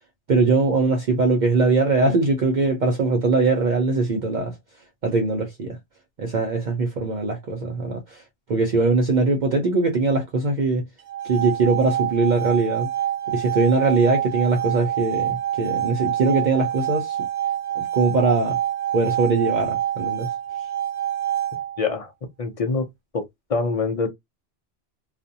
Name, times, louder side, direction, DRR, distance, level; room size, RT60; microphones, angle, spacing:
voice 1, 0.3-4.6 5.0-5.8 6.2-8.2 8.5-10.9 11.2-12.9 13.3-17.2 17.8-18.6 18.9-20.3, right 3 dB, 55° right, 0.6 m, -21 dB
sound 1, 11.0-22.0, right 11 dB, 80° right, 1.0 m, -27 dB
voice 2, 21.8-22.1 22.4-22.9 23.1-24.1, left 4 dB, 40° left, 0.6 m, -25 dB
2.4 x 2.1 x 2.6 m
omnidirectional pair, 1.1 m